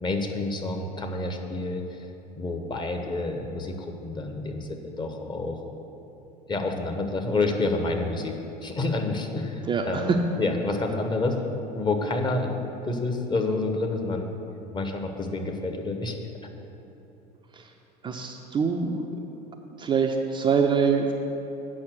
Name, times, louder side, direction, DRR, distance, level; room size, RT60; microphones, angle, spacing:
voice 1, 0.0-2.1 2.4-5.6 6.5-11.4 11.7-14.3 14.7-16.2, left 2 dB, 20° left, 4 dB, 1.0 m, -29 dB
voice 2, 9.7-10.2 17.5-17.7 18.0-19.0 19.8-21.1, right 6 dB, 20° right, 3 dB, 0.6 m, -24 dB
8.7 x 5.8 x 6.3 m, 3.0 s
figure-of-eight pair, 70°, 21 cm